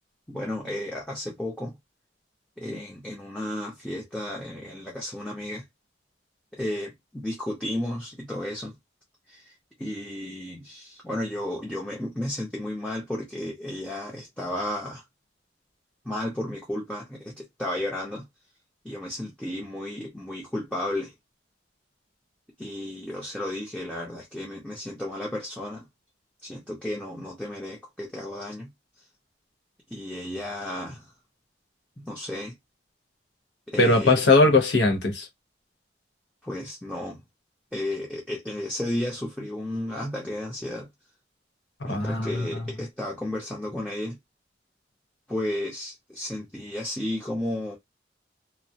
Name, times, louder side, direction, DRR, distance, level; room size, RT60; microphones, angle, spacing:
voice 1, 0.3-1.8 2.6-5.6 6.5-8.8 9.3-15.0 16.0-18.3 18.8-21.1 22.6-25.9 26.4-28.7 29.9-31.1 32.0-32.6 33.7-34.2 36.4-37.2 37.7-40.9 41.8-44.2 45.3-47.8, left 1 dB, 5° left, 0.6 m, -33 dB
voice 2, 33.8-35.3 41.9-42.6, left 2 dB, 85° left, 0.9 m, -20 dB
2.3 x 2.0 x 2.7 m
head